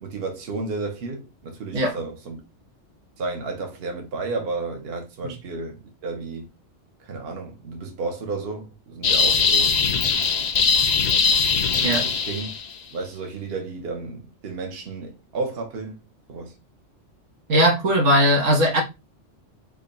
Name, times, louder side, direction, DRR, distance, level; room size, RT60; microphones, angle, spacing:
voice 1, 0.0-2.4 3.2-6.5 7.0-9.8 11.8-12.5 12.9-16.0 16.3-16.5, right 3 dB, 55° right, 1.1 m, -32 dB
sound 1, 9.0-12.7, left 6 dB, 60° left, 0.4 m, -21 dB
voice 2, 17.5-18.8, equal, 90° right, 1.5 m, -19 dB
3.6 x 2.2 x 3.9 m
omnidirectional pair, 1.3 m